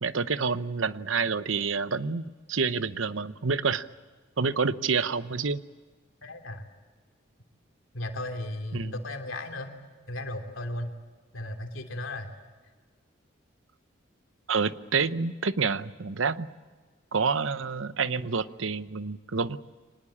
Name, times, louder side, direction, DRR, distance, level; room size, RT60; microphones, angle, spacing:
voice 1, 0.0-3.9 4.4-5.6 8.7-8.9 14.5-16.5 17.1-19.6, right 5 dB, 80° right, 14 dB, 0.9 m, -28 dB
voice 2, 6.2-6.7 7.9-9.7 10.1-10.9 11.3-12.3, left 1 dB, 85° left, 4 dB, 3.0 m, -35 dB
25.5 x 19.5 x 8.6 m, 1.4 s
head